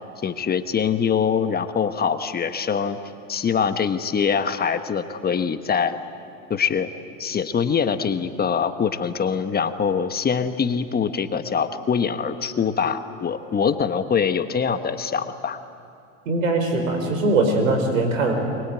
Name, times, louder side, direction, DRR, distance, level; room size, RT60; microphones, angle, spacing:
voice 1, 0.2-3.0 3.3-6.0 6.5-6.9 7.2-15.6, left 6 dB, 25° left, 9 dB, 1.3 m, -23 dB
voice 2, 16.3-18.3, right 2 dB, 90° right, 4 dB, 5.4 m, -21 dB
23.5 x 23.0 x 9.1 m, 2.5 s
hypercardioid pair, 100°, 39 cm